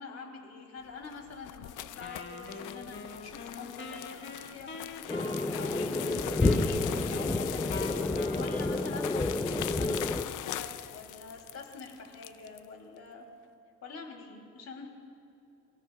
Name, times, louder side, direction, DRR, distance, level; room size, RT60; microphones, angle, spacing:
voice 1, 0.0-7.8 8.3-13.3 13.8-14.9, left 4 dB, 60° left, 1 dB, 3.1 m, -45 dB
sound 1, 0.9-12.6, left 13 dB, 85° left, 0.6 m, -41 dB
Wind instrument woodwind instrument, 2.0-9.1, left 4 dB, 40° left, 1.7 m, -44 dB
sound 2, 5.1-10.2, left 2 dB, 10° left, 0.7 m, -29 dB
28.5 x 16.0 x 2.4 m, 2.8 s
cardioid pair, 90°, 30 cm